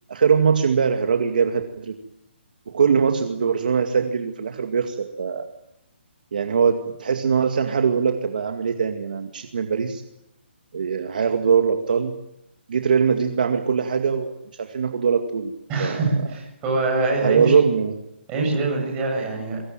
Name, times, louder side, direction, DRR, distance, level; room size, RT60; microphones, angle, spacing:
voice 1, 0.1-1.9 2.7-5.4 6.3-10.0 10.7-12.2 12.7-15.5 15.8-16.1 17.2-17.9, right 6 dB, 50° right, 5 dB, 2.2 m, -22 dB
voice 2, 15.7-17.5 18.3-19.6, right 3 dB, 15° right, -2 dB, 7.8 m, -24 dB
23.5 x 22.0 x 8.9 m, 0.86 s
hypercardioid pair, 180°, 6 cm